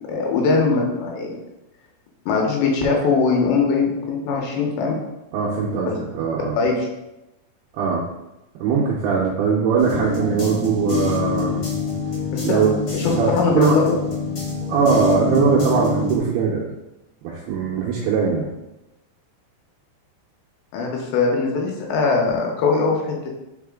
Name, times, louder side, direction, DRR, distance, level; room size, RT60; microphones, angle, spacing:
voice 1, 0.1-1.4 2.3-5.0 5.9-6.0 6.6-6.7 12.3-12.6 12.9-13.9 20.7-23.3, left 4 dB, 80° left, -1 dB, 3.0 m, -21 dB
voice 2, 5.3-6.6 7.7-8.1 8.6-11.6 12.4-12.7 13.1-13.8 14.7-16.7 17.2-18.5, right 5 dB, 85° right, -4 dB, 2.3 m, -21 dB
sound 1, 9.8-16.2, left 2 dB, 60° left, 1.4 m, -25 dB
5.6 x 4.9 x 3.6 m, 0.95 s
omnidirectional pair, 5.4 m